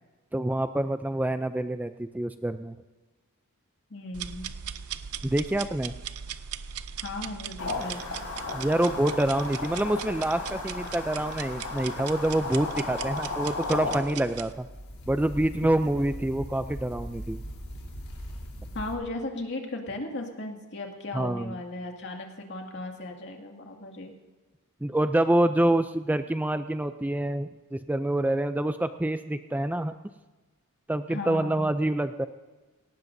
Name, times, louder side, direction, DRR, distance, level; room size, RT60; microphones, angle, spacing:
voice 1, 0.3-2.7 5.2-5.9 8.5-14.7 15.1-17.4 21.1-21.6 24.8-29.9 30.9-32.3, right 1 dB, 5° right, 10 dB, 0.3 m, -26 dB
voice 2, 3.9-4.5 7.0-8.1 18.7-24.1 31.1-31.7, left 2 dB, 55° left, 2 dB, 2.2 m, -36 dB
sound 1, 4.1-14.5, right 8 dB, 75° right, 0.6 m, -39 dB
sound 2, 7.6-14.0, left 3 dB, 85° left, 3.4 m, -35 dB
sound 3, 13.9-18.9, equal, 70° left, 3.6 m, -41 dB
18.5 x 18.0 x 2.7 m, 1.2 s
head